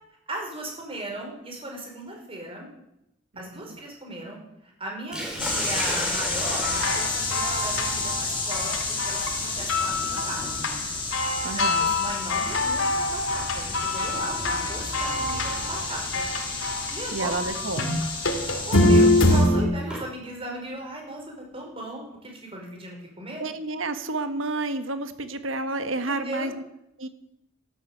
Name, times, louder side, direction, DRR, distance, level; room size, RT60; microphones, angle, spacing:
voice 1, 0.3-2.7 3.4-9.2 9.6-10.8 11.5-16.2 16.9-17.3 17.7-18.0 18.7-23.4 26.1-26.5, right 1 dB, 30° right, 1 dB, 5.3 m, -37 dB
voice 2, 3.3-3.8 11.4-11.9 17.1-17.8 23.4-26.6 27.0-27.1, right 2 dB, 75° right, 9 dB, 1.5 m, -30 dB
Sink (filling or washing), 5.1-15.1 16.2-16.5 17.0-17.1 18.6-20.1, equal, 5° right, 4.8 m, -37 dB
sound 1, 5.4-19.4, left 3 dB, 25° left, 4.9 m, -31 dB
sound 2, 6.6-9.4 9.7-10.8 11.1-16.9 17.3-19.6, left 2 dB, 85° left, 2.3 m, -25 dB
13.0 x 12.0 x 8.1 m, 0.84 s
head